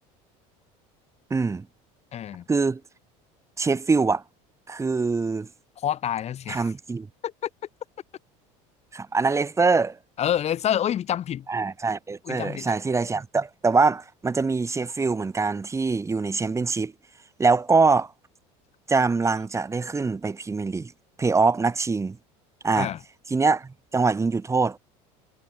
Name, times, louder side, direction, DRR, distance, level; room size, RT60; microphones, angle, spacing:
voice 1, 1.3-1.7 2.5-2.8 3.6-4.2 4.7-5.5 6.5-7.1 8.9-10.0 11.5-16.9 17.4-18.1 18.9-20.9 21.2-22.2 22.6-22.9 23.3-24.8, right 4 dB, 15° right, 5.1 m, -23 dB
voice 2, 2.1-2.4 5.8-6.7 7.2-7.5 10.2-11.5 12.2-12.7 22.8-23.0, left 10 dB, 40° left, 4.3 m, -27 dB
supercardioid pair, 120°, 17 cm